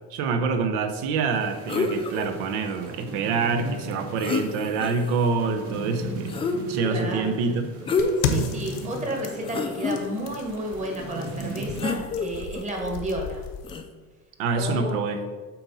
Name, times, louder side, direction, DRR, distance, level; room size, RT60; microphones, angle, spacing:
voice 1, 0.1-6.4 6.7-7.7 8.3-8.5 14.4-15.2, right 4 dB, 80° right, 7 dB, 0.9 m, -26 dB
sound 1, 1.3-12.0, right 2 dB, 45° right, 1.2 m, -39 dB
sound 2, 1.7-2.3 3.9-4.0 4.2-5.1 6.3-6.9 7.8-8.4 8.8-8.9 9.4-10.0 11.8-12.6 13.6-13.8, left 4 dB, 15° left, 0.4 m, -27 dB
voice 2, 6.9-7.4 8.2-13.4 14.5-15.0, right 1 dB, 20° right, 1 dB, 1.4 m, -32 dB
sound 3, 8.0-13.8, left 6 dB, 85° left, 1.0 m, -34 dB
7.7 x 4.2 x 4.2 m, 1.4 s
cardioid pair, 140°, 32 cm